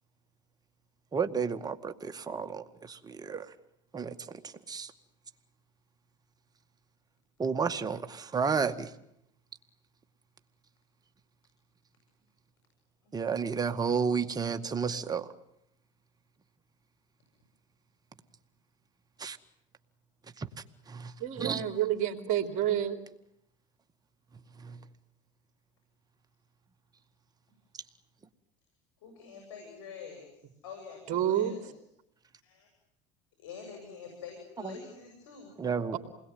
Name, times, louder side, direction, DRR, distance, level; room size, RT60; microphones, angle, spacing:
voice 1, 1.1-3.5 3.9-4.1 4.7-4.9 7.4-8.9 13.1-15.3 19.2-19.4 20.4-20.5 20.9-21.1 21.4-21.7 24.6-24.8 35.6-36.0, right 6 dB, 25° right, 8 dB, 2.1 m, -31 dB
voice 2, 21.2-23.0 31.1-31.5 35.9-36.0, right 11 dB, 55° right, 6 dB, 3.7 m, -29 dB
voice 3, 29.0-31.8 32.4-32.7 33.4-35.6, left 6 dB, 90° left, 2 dB, 7.7 m, -46 dB
28.0 x 21.5 x 9.6 m, 0.78 s
supercardioid pair, 105°, 16 cm